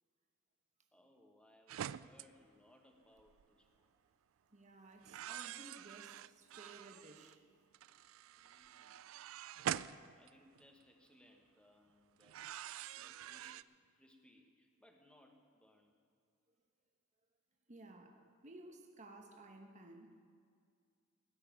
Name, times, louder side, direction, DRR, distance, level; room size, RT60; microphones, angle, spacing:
voice 1, 0.9-3.9 8.4-9.0 10.2-12.4 12.8-15.9 18.1-18.2, left 1 dB, 5° left, 1.4 m, -67 dB
sound 1, 1.7-2.3 3.2-3.4 5.0-7.3 7.7-10.8 12.2-13.6, right 10 dB, 75° right, 0.3 m, -45 dB
voice 2, 4.5-7.4 8.0-8.2 17.7-20.2, right 2 dB, 35° right, 1.1 m, -56 dB
17.0 x 6.7 x 9.4 m
head